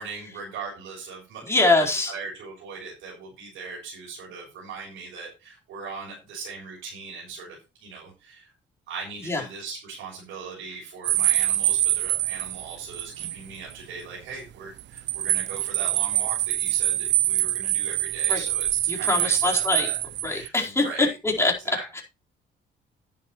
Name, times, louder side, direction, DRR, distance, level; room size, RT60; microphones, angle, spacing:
voice 1, 0.0-1.7 2.1-8.5 8.9-20.0 20.3-21.1 21.7-22.0, right 4 dB, 85° right, -3 dB, 6.5 m, -39 dB
voice 2, 1.4-2.1 9.2-9.4 18.3-18.4 18.9-19.9 20.2-22.0, left 2 dB, 15° left, -2 dB, 4.5 m, -24 dB
sound 1, 11.0-13.4 13.7-13.8 14.8-20.5, right 14 dB, 65° right, 0.4 m, -25 dB
11.0 x 10.5 x 3.2 m, 0.27 s
cardioid pair, 90°, 20 cm